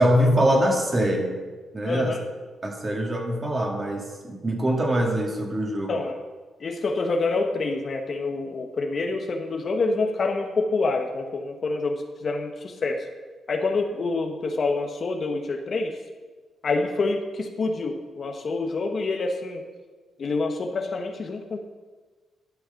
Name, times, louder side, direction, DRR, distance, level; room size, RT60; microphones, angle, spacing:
voice 1, 0.0-1.4 1.7-2.1 2.6-6.0, equal, 30° right, 1 dB, 2.2 m, -23 dB
voice 2, 1.8-2.2 5.9-6.2 6.6-13.1 13.5-16.0 16.6-19.6 20.2-21.6, left 3 dB, 50° left, 4 dB, 1.0 m, -27 dB
11.5 x 6.4 x 5.7 m, 1.4 s
cardioid pair, 85°, 0 cm